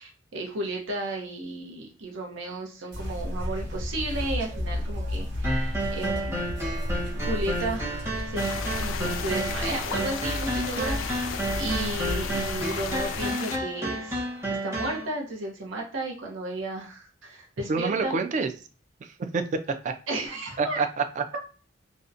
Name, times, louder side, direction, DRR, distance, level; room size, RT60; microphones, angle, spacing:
voice 1, 0.0-6.7 7.1-14.2 14.6-18.1 20.1-20.8, right 2 dB, 90° right, 0 dB, 0.7 m, -33 dB
sound 1, 2.9-13.3, left 1 dB, 65° right, 0.9 m, -33 dB
sound 2, 5.4-15.0, right 1 dB, 15° right, 0.8 m, -31 dB
sound 3, 8.4-13.6, left 8 dB, 80° left, 0.3 m, -35 dB
voice 2, 17.7-18.5 19.0-19.4 19.8-19.9 20.6-21.2, right 4 dB, 40° right, 8 dB, 0.3 m, -27 dB
2.7 x 2.1 x 2.4 m, 0.37 s
head